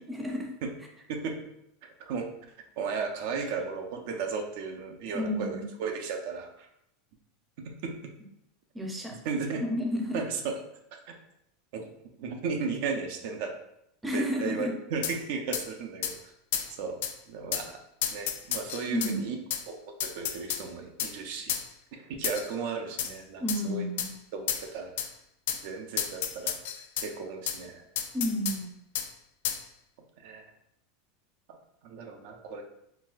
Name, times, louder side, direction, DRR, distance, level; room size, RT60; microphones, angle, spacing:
voice 1, 0.1-0.5 5.1-5.7 8.7-9.2 9.7-10.2 14.0-14.8 18.8-19.3 23.4-24.1 28.1-28.7, equal, 10° right, 1 dB, 0.6 m, -31 dB
voice 2, 2.8-6.7 7.6-8.1 9.1-9.6 10.1-10.6 10.9-11.1 11.7-11.9 12.2-13.5 14.1-16.2 16.8-17.0 17.3-17.8 18.1-19.4 19.7-21.5 21.9-23.9 24.3-24.9 25.6-26.5 27.0-27.8 30.2-30.4 31.8-32.6, right 5 dB, 65° right, 4 dB, 0.4 m, -35 dB
sound 1, 15.0-15.2 15.5-15.7 16.0-16.2 16.5-16.7 17.0-17.1 17.5-17.7 18.0-19.1 19.5-19.6 20.0-20.6 21.0-21.1 21.5-21.7 22.2-22.5 23.0-23.1 23.5-23.6 24.0-24.1 24.5-24.6 25.0-25.1 25.5-25.6 26.0-27.1 27.5-27.6 28.0-28.6 29.0-29.1 29.4-29.6, left 9 dB, 75° left, 0.3 m, -31 dB
3.9 x 2.2 x 2.5 m, 0.78 s
supercardioid pair, 130°, 0 cm